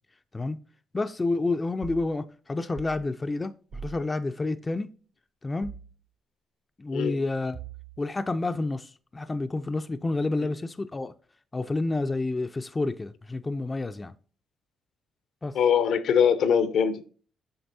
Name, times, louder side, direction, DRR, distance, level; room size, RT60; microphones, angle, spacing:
voice 1, 0.9-4.9 5.4-5.8 6.8-7.6 8.0-11.1 11.5-14.1 15.4-15.6, left 2 dB, 20° left, 0.4 m, -29 dB
sound 1, 1.8-2.1 2.8-3.0 3.7-4.0 5.6-5.9 7.5-8.1, right 6 dB, 70° right, 1.2 m, -41 dB
voice 2, 15.5-17.1, left 7 dB, 75° left, 0.7 m, -22 dB
7.9 x 6.0 x 2.7 m
cardioid pair, 90°, 0 cm